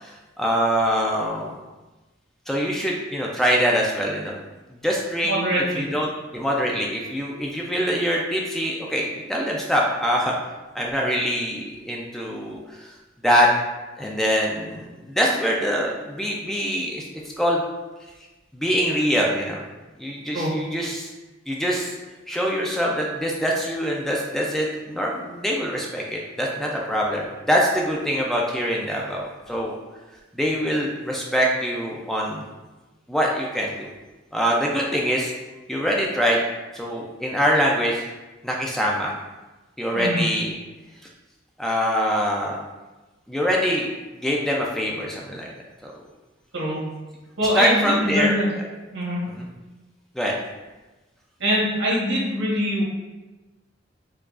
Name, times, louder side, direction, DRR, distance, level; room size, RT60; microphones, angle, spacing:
voice 1, 0.0-1.5 2.5-4.4 4.7-5.3 5.8-10.3 10.7-12.9 13.2-13.5 14.0-17.1 17.4-17.6 18.5-19.6 20.0-21.1 21.5-22.0 22.3-29.7 30.3-32.4 33.1-33.9 34.3-35.3 35.7-36.4 36.7-38.0 38.4-39.1 39.8-40.5 41.6-42.6 43.3-43.9 44.2-45.5 45.8-45.9 47.5-48.3 49.4-49.5 50.2-50.4, equal, ahead, -2 dB, 0.3 m, -24 dB
voice 2, 5.2-5.9 20.3-20.6 39.9-40.2 46.5-46.9 47.4-48.5 48.9-49.2 51.4-52.8, equal, 80° right, -6 dB, 1.3 m, -23 dB
4.6 x 2.3 x 2.4 m, 1.1 s
head